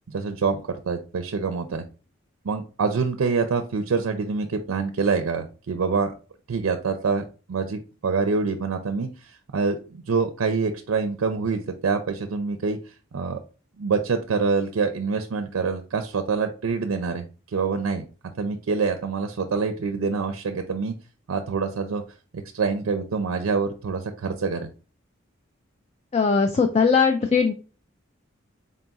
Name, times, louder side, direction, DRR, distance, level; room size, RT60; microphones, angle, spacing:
voice 1, 0.1-1.8 2.4-6.1 6.5-7.2 7.5-13.4 13.8-17.2 17.5-18.0 18.4-20.9 21.3-22.0 22.5-24.7, right 4 dB, 85° right, 7 dB, 0.4 m, -26 dB
voice 2, 26.1-27.5, left 5 dB, 30° left, 6 dB, 0.3 m, -19 dB
3.9 x 2.4 x 3.9 m, 0.35 s
head